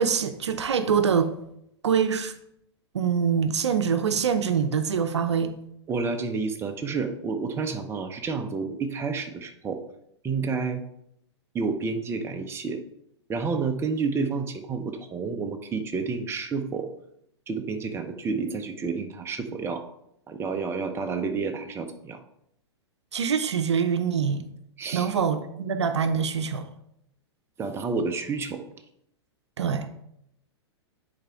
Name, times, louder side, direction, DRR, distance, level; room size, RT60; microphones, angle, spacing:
voice 1, 0.0-1.3 1.8-2.3 2.9-5.5 23.1-24.5 24.9-26.7 29.6-29.9, right 6 dB, 75° right, 0.6 m, -24 dB
voice 2, 5.9-9.8 10.2-10.8 11.5-12.8 13.3-16.9 17.5-19.8 20.3-22.2 24.8-25.1 27.6-28.6, right 4 dB, 15° right, 0.7 m, -30 dB
9.9 x 4.4 x 3.5 m
figure-of-eight pair, 110°, 15 cm